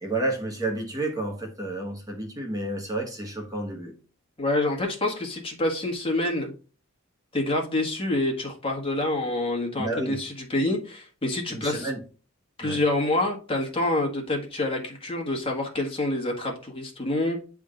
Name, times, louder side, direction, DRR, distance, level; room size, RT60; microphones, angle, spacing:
voice 1, 0.0-3.9 9.8-10.2 11.5-12.0 12.6-12.8, right 2 dB, 20° right, 1.1 m, -30 dB
voice 2, 4.4-6.5 7.3-11.9 12.6-17.4, left 2 dB, 25° left, 1.5 m, -27 dB
9.3 x 3.7 x 3.8 m
head